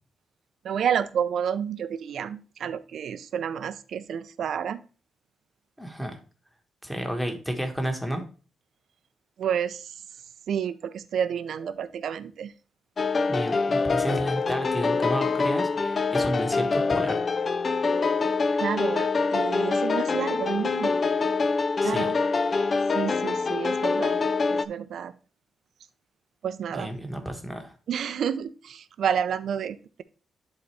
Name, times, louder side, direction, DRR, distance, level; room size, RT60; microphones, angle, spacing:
voice 1, 0.6-4.8 9.4-9.9 10.5-12.5 18.5-21.0 21.8-22.1 22.9-24.2 24.5-25.1 26.4-26.9 27.9-30.0, right 8 dB, 70° right, 14 dB, 0.5 m, -30 dB
voice 2, 5.8-6.2 6.8-8.2 13.3-17.2 21.8-22.1 26.7-27.7, equal, ahead, 3 dB, 1.3 m, -31 dB
sound 1, 13.0-24.7, left 4 dB, 35° left, 0.4 m, -25 dB
10.5 x 4.0 x 3.3 m, 0.36 s
cardioid pair, 130°, 0 cm